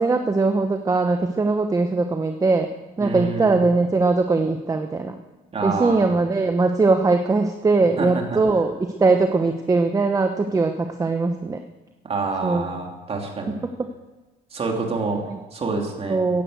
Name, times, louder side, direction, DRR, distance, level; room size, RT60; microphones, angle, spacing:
voice 1, 0.0-2.7 3.0-5.2 5.6-11.6 12.4-12.7 13.6-13.9 15.3-15.4 16.1-16.4, right 3 dB, 20° right, 6 dB, 1.0 m, -21 dB
voice 2, 3.0-3.5 5.5-6.0 8.0-8.1 12.0-13.6 14.5-15.2 15.5-16.3, right 4 dB, 35° right, 1 dB, 3.0 m, -27 dB
15.0 x 11.0 x 8.0 m, 1.2 s
cardioid pair, 110°, 17 cm